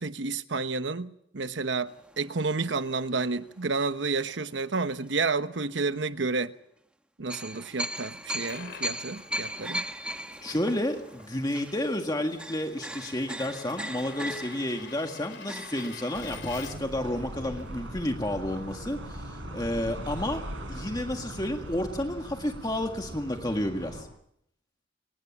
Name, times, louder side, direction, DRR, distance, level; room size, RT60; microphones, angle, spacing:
voice 1, 0.0-6.5 7.2-9.9, right 4 dB, 75° right, 1.1 m, -30 dB
sound 1, 1.9-4.3 4.9-5.1 7.3-18.1 18.3-18.4 18.7-18.9, equal, 5° right, 1.1 m, -39 dB
Coin (dropping), 8.1-17.0, left 6 dB, 75° left, 3.2 m, -48 dB
voice 2, 10.4-20.4 20.7-24.1, left 1 dB, 20° left, 1.8 m, -31 dB
sound 2, 16.1-24.0, right 1 dB, 90° right, 7.1 m, -40 dB
25.0 x 20.0 x 7.3 m
head